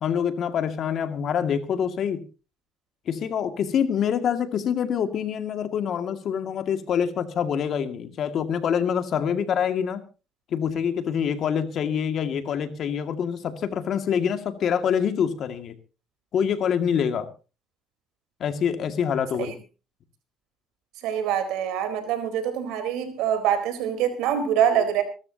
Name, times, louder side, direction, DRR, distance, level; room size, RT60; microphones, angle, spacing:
voice 1, 0.0-2.2 3.1-10.0 10.5-15.8 16.3-17.3 18.4-19.5, left 8 dB, 65° left, 2.2 m, -25 dB
voice 2, 21.0-25.0, right 9 dB, 85° right, 4.1 m, -24 dB
25.0 x 13.0 x 2.9 m
supercardioid pair, 75°, 0 cm